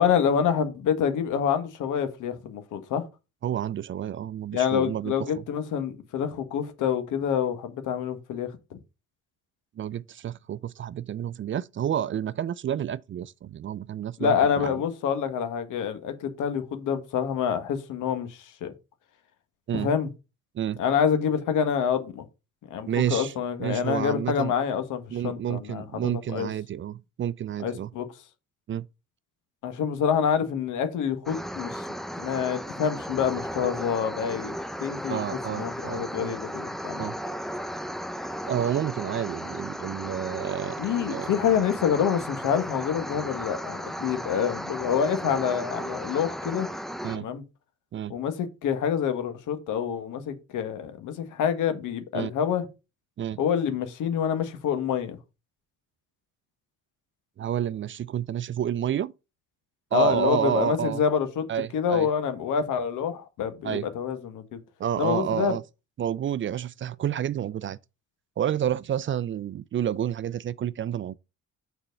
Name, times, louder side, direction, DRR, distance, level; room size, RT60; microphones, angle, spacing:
voice 1, 0.0-3.0 4.5-8.5 14.2-18.7 19.8-20.1 20.8-22.2 22.7-25.8 26.3-26.5 27.6-28.1 29.6-31.8 32.2-34.5 34.8-35.2 35.5-37.1 40.8-46.7 47.2-47.4 48.1-52.7 53.4-55.2 59.9-61.5 61.7-64.6 65.0-65.5, left 7 dB, 85° left, 1.5 m, -27 dB
voice 2, 3.4-5.1 9.8-14.7 19.7-19.9 20.5-20.8 22.9-23.3 23.6-24.5 25.1-27.9 28.7-28.9 35.1-36.3 37.0-37.2 38.5-41.3 47.0-47.3 47.9-48.2 52.1-52.3 53.2-53.4 57.4-59.1 59.9-61.0 61.5-62.1 63.6-63.9 64.8-65.6 66.0-67.8 68.4-71.2, right 10 dB, 40° right, 0.4 m, -29 dB
sound 1, 31.3-47.2, equal, ahead, 0.7 m, -35 dB
6.8 x 4.4 x 5.3 m
cardioid pair, 90°, 30 cm